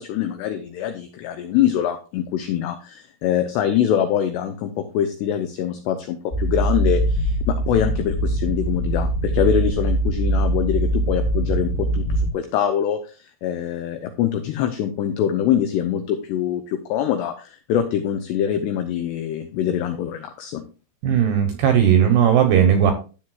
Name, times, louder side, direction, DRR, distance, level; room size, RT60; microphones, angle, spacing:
voice 1, 0.0-20.6, left 9 dB, 85° left, 8 dB, 2.4 m, -24 dB
sound 1, 6.3-12.3, right 1 dB, 35° left, 2.2 m, -22 dB
voice 2, 21.0-22.9, right 9 dB, 75° right, 6 dB, 2.5 m, -16 dB
12.0 x 7.5 x 2.4 m, 0.34 s
omnidirectional pair, 5.7 m